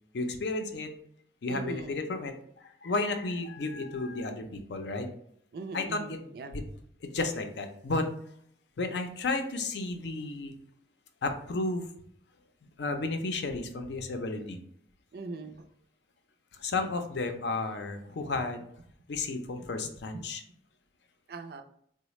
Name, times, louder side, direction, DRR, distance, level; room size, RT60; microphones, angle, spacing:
voice 1, 0.1-0.9 1.4-2.3 2.6-5.1 5.7-6.2 6.5-6.6 7.1-8.1 8.8-10.5 11.2-11.9 12.8-14.6 16.6-18.7 19.1-20.4, left 3 dB, 80° left, 6 dB, 0.5 m, -32 dB
voice 2, 1.5-2.0 5.5-6.6 15.1-15.6 20.1-20.2 21.3-21.6, right 3 dB, 60° right, 7 dB, 0.4 m, -40 dB
3.9 x 2.1 x 3.0 m, 0.67 s
head